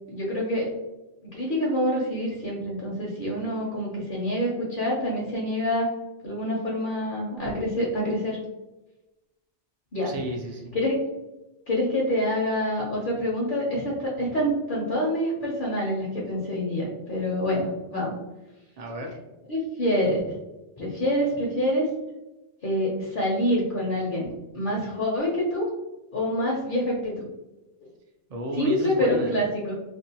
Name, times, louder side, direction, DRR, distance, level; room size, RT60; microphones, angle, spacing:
voice 1, 0.1-0.7 1.2-5.9 6.2-8.4 9.9-10.1 10.7-11.0 11.7-18.2 19.5-20.3 20.8-21.9 22.6-25.7 26.1-27.1 28.5-29.7, equal, 55° left, -4 dB, 0.7 m, -26 dB
voice 2, 10.0-10.7 18.8-19.2 28.3-29.3, equal, 65° right, 2 dB, 0.4 m, -33 dB
2.5 x 2.2 x 2.7 m, 1.0 s
omnidirectional pair, 1.2 m